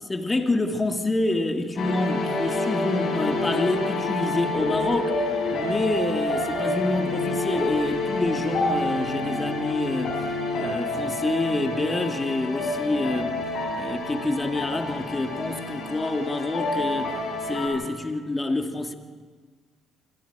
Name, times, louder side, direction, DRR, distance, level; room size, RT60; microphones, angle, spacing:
voice 1, 0.0-5.2 5.5-10.2 10.5-13.5 13.7-17.2 17.4-18.9, left 2 dB, 25° left, 2.4 m, -27 dB
sound 1, 1.8-17.7, left 2 dB, 60° left, 7.3 m, -28 dB
26.5 x 24.0 x 4.9 m
hypercardioid pair, 55°, 0 cm